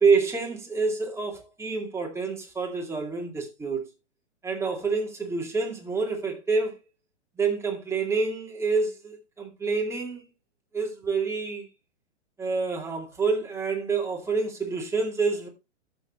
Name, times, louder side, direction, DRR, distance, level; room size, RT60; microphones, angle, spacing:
voice 1, 0.0-3.9 4.4-6.8 7.4-10.2 10.7-11.7 12.4-15.5, right 4 dB, 10° right, 2.3 m, -27 dB
12.5 x 6.9 x 3.1 m
hypercardioid pair, 120°, 35 cm